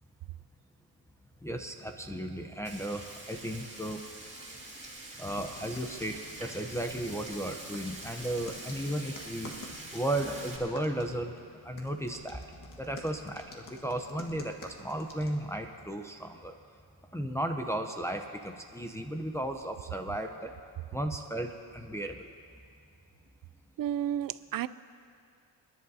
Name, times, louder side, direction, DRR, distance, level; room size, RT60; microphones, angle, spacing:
voice 1, 1.4-4.0 5.2-9.5 9.9-11.3 11.6-12.4 12.8-16.5 17.1-20.5 20.9-22.3, right 1 dB, 5° left, 3 dB, 0.7 m, -35 dB
Frying (food), 2.6-10.6, right 2 dB, 15° right, 2.5 m, -45 dB
sound 1, 5.2-15.5, left 2 dB, 45° left, 1.6 m, -50 dB
voice 2, 23.8-24.7, right 11 dB, 50° right, 15 dB, 0.4 m, -31 dB
29.5 x 10.5 x 2.8 m, 2.4 s
cardioid pair, 115°, 45 cm